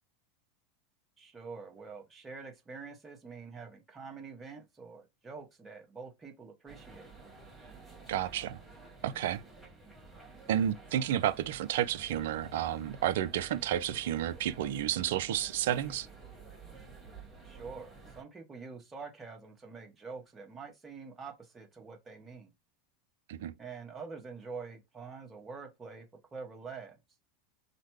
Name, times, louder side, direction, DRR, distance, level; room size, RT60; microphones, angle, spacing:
voice 1, 1.2-7.1 17.4-17.9 18.1-22.5 23.6-26.1 26.3-27.0, right 5 dB, 20° right, 1.2 m, -46 dB
sound 1, 6.7-18.2, right 3 dB, ahead, 1.4 m, -52 dB
voice 2, 8.1-8.6 9.0-9.4 10.5-16.1 23.3-23.5, right 11 dB, 65° right, 0.3 m, -31 dB
3.3 x 2.0 x 3.0 m
hypercardioid pair, 85°, 0 cm